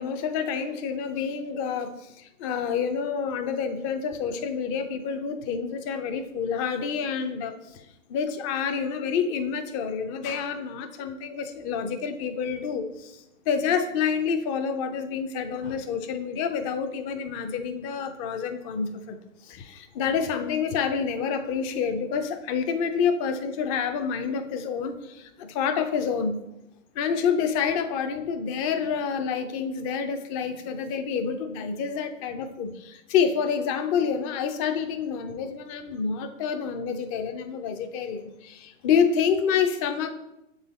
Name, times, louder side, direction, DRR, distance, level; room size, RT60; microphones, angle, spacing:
voice 1, 0.0-7.8 8.1-19.2 19.4-26.4 26.9-40.1, left 6 dB, 25° left, 8 dB, 0.5 m, -28 dB
7.4 x 3.9 x 4.1 m, 0.88 s
hypercardioid pair, 130°, 40 cm